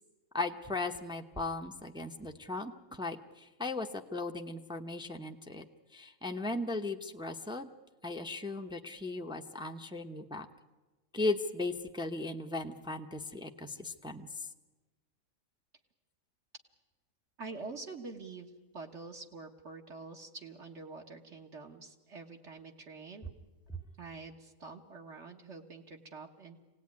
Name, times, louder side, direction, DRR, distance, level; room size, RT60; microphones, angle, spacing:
voice 1, 0.3-5.7 5.9-7.7 8.0-10.5 11.1-14.5, left 2 dB, 5° right, 4 dB, 0.7 m, -37 dB
voice 2, 17.4-23.3 24.0-26.6, right 4 dB, 60° right, 1 dB, 1.7 m, -46 dB
25.0 x 18.0 x 9.6 m, 1.2 s
omnidirectional pair, 1.4 m